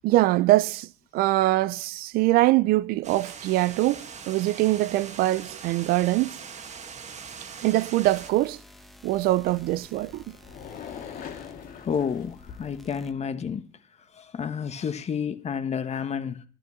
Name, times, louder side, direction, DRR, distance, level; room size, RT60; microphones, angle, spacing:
voice 1, 0.0-6.4 7.6-8.6 9.0-10.3, right 17 dB, 75° right, 0.4 m, -23 dB
sound 1, 3.0-8.3, right 6 dB, 50° right, 1.5 m, -41 dB
sound 2, 8.0-13.1, left 1 dB, ahead, 1.2 m, -52 dB
sound 3, 9.1-12.9, left 7 dB, 70° left, 1.8 m, -43 dB
voice 2, 11.8-13.6 14.1-16.4, left 7 dB, 45° left, 1.2 m, -30 dB
11.5 x 6.1 x 8.8 m
supercardioid pair, 75°, 15 cm